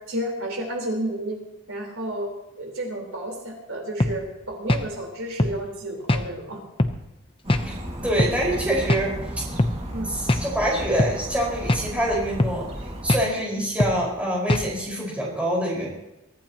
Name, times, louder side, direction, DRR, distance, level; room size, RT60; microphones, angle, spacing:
voice 1, 0.1-1.4 1.7-2.3 2.6-6.6 9.9-10.1, right 1 dB, 75° right, 0 dB, 4.3 m, -31 dB
sound 1, 4.0-4.2 4.7-4.9 5.4-5.6 6.1-6.3 6.8-7.0 7.5-7.7 8.2-8.4 8.9-9.1 9.6-9.8 10.3-10.5 11.0-11.2 11.7-11.9 12.4-12.6 13.1-13.3 13.8-14.0 14.5-14.7, left 1 dB, 25° left, 0.8 m, -22 dB
sound 2, 7.4-13.1, equal, 30° right, 2.2 m, -34 dB
voice 2, 7.6-9.4 10.1-12.7 13.0-15.9, right 1 dB, 5° right, -4 dB, 5.1 m, -25 dB
23.5 x 14.5 x 3.0 m, 0.93 s
head